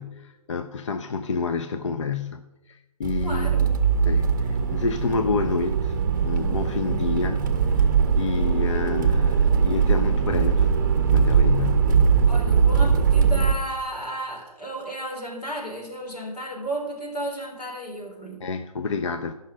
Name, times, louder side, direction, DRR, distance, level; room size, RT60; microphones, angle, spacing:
voice 1, 0.0-2.4 2.7-3.8 4.0-7.4 7.7-12.0 18.4-19.3, left 5 dB, 50° left, 9 dB, 0.5 m, -29 dB
Accelerating revving vroom, 3.0-13.5, right 6 dB, 30° right, 0.7 m, -21 dB
voice 2, 3.2-3.8 12.3-18.5, right 1 dB, 85° left, -1 dB, 3.7 m, -33 dB
12.5 x 5.5 x 5.0 m, 0.98 s
figure-of-eight pair, 150°, 20 cm